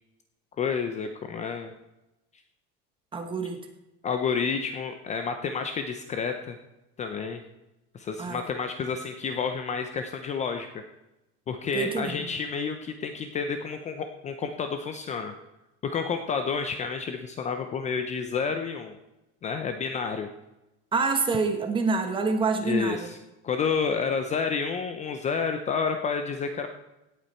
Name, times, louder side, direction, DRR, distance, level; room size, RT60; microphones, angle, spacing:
voice 1, 0.6-1.7 4.0-6.6 7.0-7.4 7.9-10.8 11.5-15.3 15.8-18.9 19.4-20.3 22.6-23.2 23.4-26.7, left 5 dB, 20° left, 7 dB, 0.6 m, -30 dB
voice 2, 3.1-3.6 8.2-8.4 11.7-12.2 20.9-23.1, right 4 dB, 15° right, 5 dB, 1.2 m, -26 dB
17.5 x 8.3 x 4.4 m, 0.97 s
cardioid pair, 175°, 31 cm